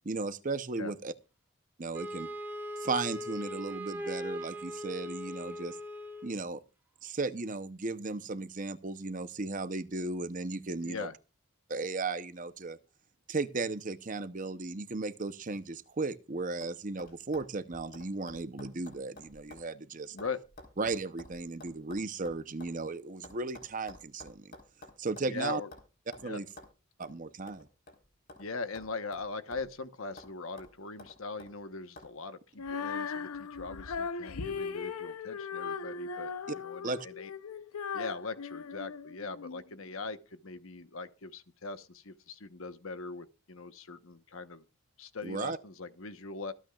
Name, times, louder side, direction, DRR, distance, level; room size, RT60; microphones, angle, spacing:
voice 1, 0.0-1.1 1.8-2.3 2.8-5.8 6.2-6.6 7.0-11.1 11.7-12.8 13.3-20.2 20.8-24.5 25.0-25.6 26.2-26.5 27.0-27.7 36.8-37.1 45.2-45.6, right 3 dB, 35° right, 0.8 m, -35 dB
Wind instrument woodwind instrument, 1.9-6.4, equal, 10° right, 1.4 m, -40 dB
voice 2, 10.8-11.1 20.1-20.4 25.3-25.7 26.2-26.4 28.4-36.3 36.6-37.3 37.9-44.6 45.0-46.5, left 3 dB, 65° left, 1.1 m, -41 dB
sound 1, 15.8-16.2 16.6-16.7 17.0-19.7 19.9-22.8 23.2-25.4 25.7-25.9 26.1-26.3 26.6-26.7 27.0-27.2 27.5-28.5 28.8-29.8 30.2-30.3 30.6-31.5 32.0-32.1, left 2 dB, 40° left, 4.2 m, -52 dB
Female singing, 32.6-39.6, left 5 dB, 90° left, 0.7 m, -38 dB
25.5 x 9.0 x 2.4 m
head